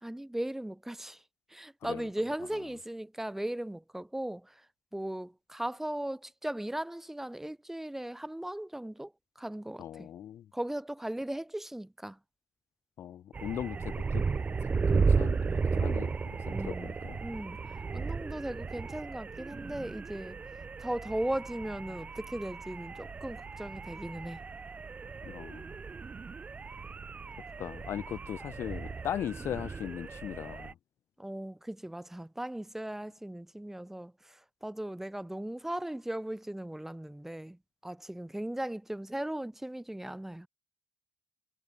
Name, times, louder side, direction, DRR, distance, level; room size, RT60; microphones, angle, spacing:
voice 1, 0.0-1.2 1.5-4.6 4.9-10.1 10.5-12.2 16.5-16.9 17.2-20.4 20.8-24.4 31.2-40.5, right 1 dB, 5° right, 1.7 m, -38 dB
voice 2, 9.8-10.5 13.0-14.2 14.9-17.2 25.2-25.8 27.6-30.8, left 10 dB, 55° left, 1.1 m, -39 dB
sound 1, 13.3-30.7, right 4 dB, 30° right, 0.8 m, -34 dB
hypercardioid pair, 60°, 5 cm